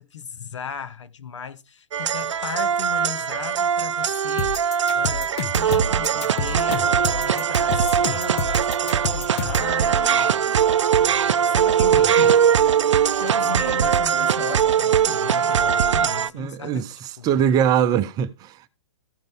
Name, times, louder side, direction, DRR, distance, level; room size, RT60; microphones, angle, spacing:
voice 1, 0.0-4.6 4.9-10.6 11.0-17.5, left 8 dB, 80° left, 0.8 m, -37 dB
sound 1, 1.9-16.3, right 8 dB, 85° right, 0.4 m, -21 dB
sound 2, 4.4-9.7, left 5 dB, 60° left, 1.4 m, -29 dB
voice 2, 16.3-16.9 17.2-18.6, right 9 dB, 25° right, 0.6 m, -21 dB
14.0 x 5.2 x 3.4 m
hypercardioid pair, 125°, 15 cm